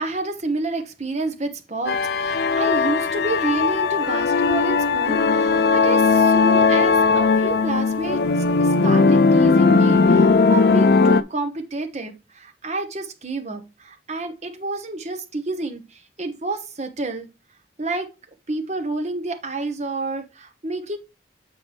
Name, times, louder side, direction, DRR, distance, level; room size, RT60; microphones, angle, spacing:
voice 1, 0.0-8.2 8.6-17.3 17.8-18.1 18.5-21.0, right 3 dB, 35° right, 1.1 m, -29 dB
sound 1, 1.9-11.2, left 4 dB, 55° left, 0.4 m, -18 dB
7.5 x 5.1 x 3.4 m
head